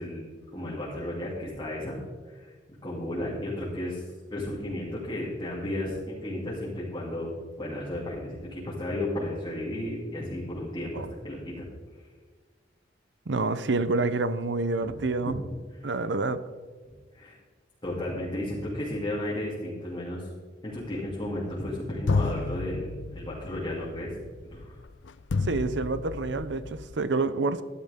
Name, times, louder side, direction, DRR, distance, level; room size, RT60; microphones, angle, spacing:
voice 1, 0.0-2.0 2.3-2.5 2.8-7.3 7.6-11.6 14.8-14.9 15.2-15.3 15.8-15.9 17.1-17.4 17.8-20.3 20.6-24.1 24.5-24.8, left 1 dB, 25° left, -8 dB, 3.0 m, -33 dB
voice 2, 13.3-15.4 15.8-16.4 25.4-27.6, right 3 dB, 65° right, 13 dB, 0.7 m, -28 dB
sound 1, 20.7-21.7 22.1-26.9, left 3 dB, 75° left, 0.5 m, -32 dB
14.5 x 12.0 x 3.7 m, 1.5 s
head